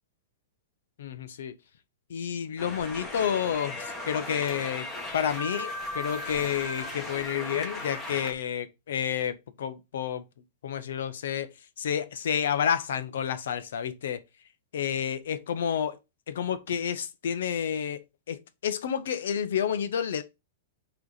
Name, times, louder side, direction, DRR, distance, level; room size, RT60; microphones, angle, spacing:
voice 1, 1.0-1.6 2.1-4.9 5.1-10.2 10.6-11.5 11.8-14.2 14.7-16.0 16.3-18.0 18.3-20.2, left 8 dB, 75° left, 1.0 m, -30 dB
sound 1, 2.6-8.3, left 2 dB, 10° left, 1.4 m, -37 dB
7.8 x 3.3 x 4.2 m
hypercardioid pair, 155°, 0 cm